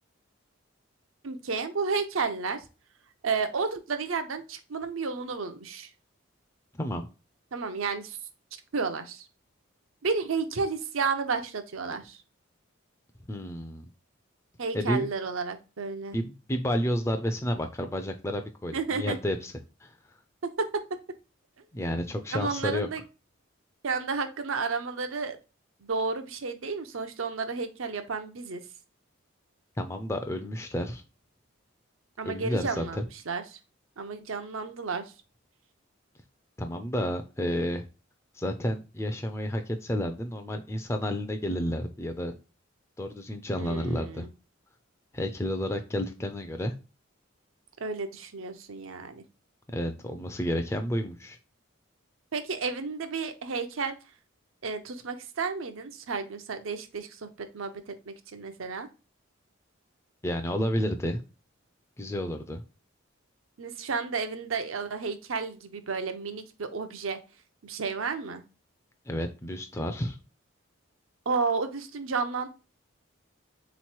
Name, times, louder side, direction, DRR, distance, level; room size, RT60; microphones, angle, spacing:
voice 1, 1.2-2.6 3.2-5.9 7.5-8.2 8.7-9.3 10.0-12.2 14.6-16.2 18.7-19.2 20.4-21.0 22.3-23.0 23.8-25.4 25.8-28.6 32.2-33.4 34.0-35.1 43.6-44.3 47.8-49.2 52.3-53.9 54.6-58.9 63.6-67.2 67.6-68.4 71.3-72.5, right 4 dB, 80° right, 8 dB, 0.7 m, -32 dB
voice 2, 13.3-13.9 14.7-15.1 16.1-19.5 19.8-19.9 21.7-22.9 29.8-31.0 32.2-33.0 36.6-37.8 38.3-42.3 43.0-44.3 45.1-46.7 49.7-51.4 60.2-61.2 62.0-62.6 69.1-70.2, equal, 15° left, 5 dB, 0.4 m, -31 dB
4.0 x 3.1 x 4.3 m, 0.31 s
head